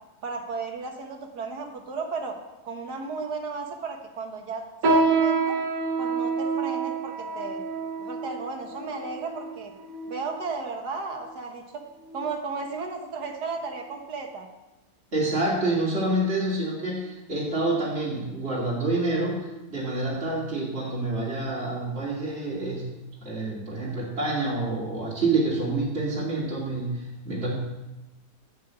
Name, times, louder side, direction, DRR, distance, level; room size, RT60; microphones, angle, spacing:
voice 1, 0.2-2.4 2.6-5.6 6.0-7.6 8.0-9.7 10.1-11.8 12.1-14.5 15.5-15.8, right 4 dB, 85° right, 3 dB, 2.0 m, -34 dB
sound 1, 4.8-10.5 11.2-11.3 12.0-12.3 12.7-12.9 13.6-13.7, right 4 dB, 60° right, 1.6 m, -27 dB
voice 2, 15.1-22.9 23.2-27.5, right 2 dB, 40° right, -6 dB, 2.7 m, -27 dB
10.5 x 5.6 x 8.0 m, 1.0 s
omnidirectional pair, 1.7 m